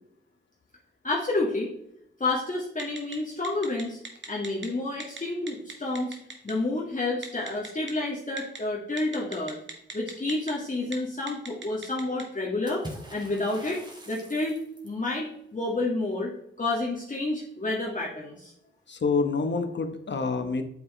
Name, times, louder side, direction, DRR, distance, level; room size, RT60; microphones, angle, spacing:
voice 1, 1.0-1.7 2.2-4.0 4.3-6.2 6.4-9.6 9.9-12.8 13.1-13.8 14.1-14.6 14.8-16.3 16.6-18.5, left 2 dB, 40° left, -4 dB, 2.0 m, -29 dB
Telephone, 2.8-3.1 3.4-4.7 5.0-5.2 5.5-6.5 7.2-7.9 8.4-8.6 9.0-10.5 10.8-10.9 11.3-12.2, right 4 dB, 65° right, 1.8 m, -38 dB
Water / Splash splatter, 12.7-15.0, right 1 dB, 20° right, 2.3 m, -44 dB
voice 2, 18.9-20.6, left 4 dB, 60° left, 6 dB, 1.2 m, -27 dB
8.6 x 8.1 x 3.3 m, 0.73 s
wide cardioid pair, 90°, 21 cm